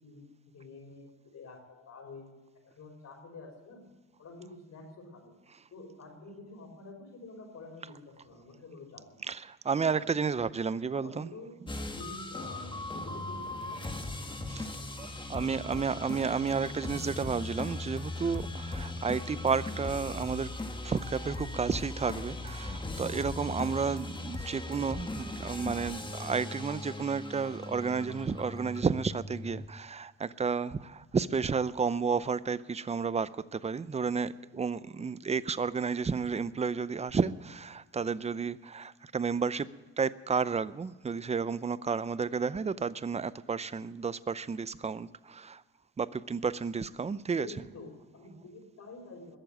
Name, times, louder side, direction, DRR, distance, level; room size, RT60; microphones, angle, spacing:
voice 1, 0.0-2.4 2.6-3.9 4.2-5.3 5.7-9.2 9.8-10.1 10.9-11.6 11.9-14.0 15.6-16.1 31.9-32.0 47.3-49.4, left 2 dB, 60° left, 5.1 m, -48 dB
voice 2, 9.3-11.3 14.5-14.7 15.0-20.5 20.8-39.7 40.0-45.6 46.0-47.5, right 5 dB, 20° right, 0.6 m, -32 dB
sound 1, 11.7-29.7, left 2 dB, 15° left, 1.4 m, -39 dB
21.0 x 7.1 x 8.8 m
cardioid pair, 90°, 30 cm